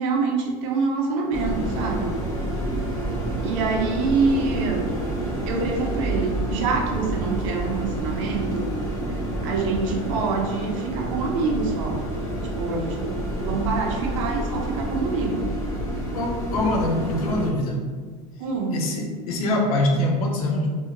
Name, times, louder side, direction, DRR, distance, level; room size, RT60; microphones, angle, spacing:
voice 1, 0.0-2.1 3.4-4.9 5.5-8.7 9.4-12.0 12.6-15.4 18.4-18.8, right 4 dB, 60° right, 1 dB, 0.6 m, -26 dB
sound 1, 1.3-17.5, right 1 dB, 15° left, 0.6 m, -28 dB
voice 2, 16.1-17.8 18.7-20.7, left 1 dB, 85° left, 1 dB, 0.6 m, -24 dB
2.6 x 2.4 x 2.9 m, 1.5 s
supercardioid pair, 145°, 18 cm